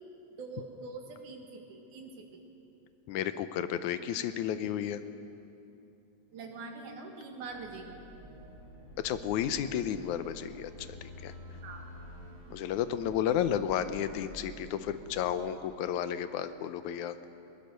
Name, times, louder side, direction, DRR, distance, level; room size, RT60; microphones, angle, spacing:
voice 1, 0.3-2.4 6.3-8.0 11.6-11.9, right 3 dB, 80° right, 2 dB, 3.4 m, -44 dB
voice 2, 3.1-5.0 9.0-11.3 12.5-17.2, left 10 dB, 80° left, 12 dB, 2.2 m, -32 dB
sound 1, 7.4-14.4, left 2 dB, 55° left, 8.2 m, -52 dB
sound 2, 8.1-15.4, right 2 dB, 45° right, 2.6 m, -52 dB
21.5 x 19.5 x 6.6 m, 2.8 s
omnidirectional pair, 3.5 m